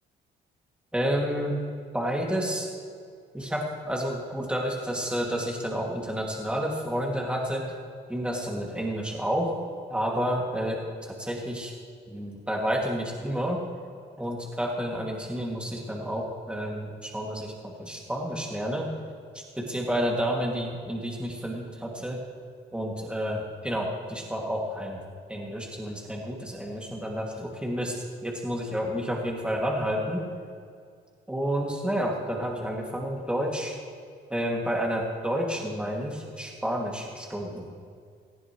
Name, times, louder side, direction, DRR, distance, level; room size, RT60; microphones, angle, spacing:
voice 1, 0.9-1.6 1.9-2.7 3.3-7.7 8.1-9.6 9.9-11.7 12.1-13.6 14.2-18.9 19.3-22.2 22.7-25.0 25.3-30.2 31.3-33.8 34.3-37.7, equal, 5° right, -1 dB, 2.3 m, -30 dB
18.0 x 14.5 x 3.2 m, 2.2 s
cardioid pair, 90°, 20 cm